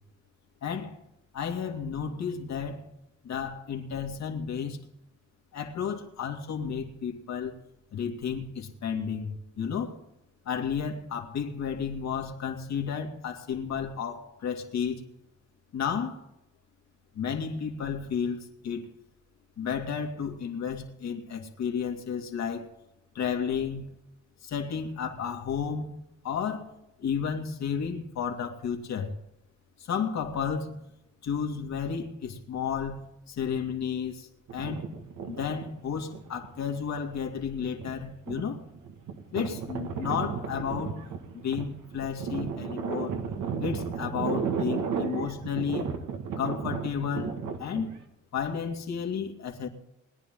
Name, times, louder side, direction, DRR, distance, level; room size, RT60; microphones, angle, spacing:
voice 1, 0.6-1.0 1.3-2.9 3.2-4.8 5.5-7.6 7.9-10.0 10.5-15.0 15.7-16.2 17.1-18.9 19.6-22.7 23.1-24.0 24.4-26.0 26.2-26.7 27.0-29.2 29.8-30.8 31.2-34.9 35.3-38.6 39.3-41.0 41.4-43.2 43.6-46.0 46.4-47.9 48.3-49.7, left 7 dB, 65° left, 2.3 m, -32 dB
sound 1, 34.5-36.6 37.2-48.0, right 6 dB, 80° right, 1.9 m, -34 dB
21.0 x 10.0 x 3.8 m
cardioid pair, 90°, 30 cm